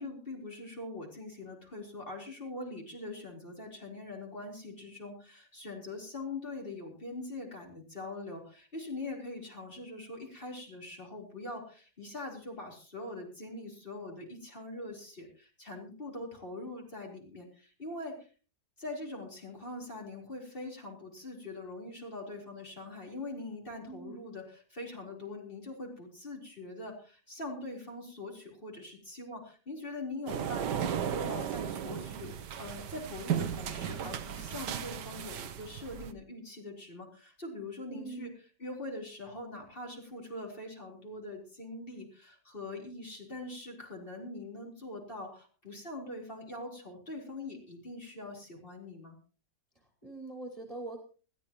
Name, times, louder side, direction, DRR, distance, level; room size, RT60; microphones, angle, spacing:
voice 1, 0.0-18.3 18.8-38.3 38.6-49.1, left 2 dB, 30° left, -1 dB, 4.2 m, -43 dB
voice 2, 23.9-24.3 37.9-38.3 50.0-51.0, right 2 dB, 20° right, 2 dB, 2.5 m, -43 dB
sound 1, 30.3-36.1, right 8 dB, 80° right, 1.5 m, -35 dB
20.5 x 15.0 x 3.0 m, 0.37 s
omnidirectional pair, 1.8 m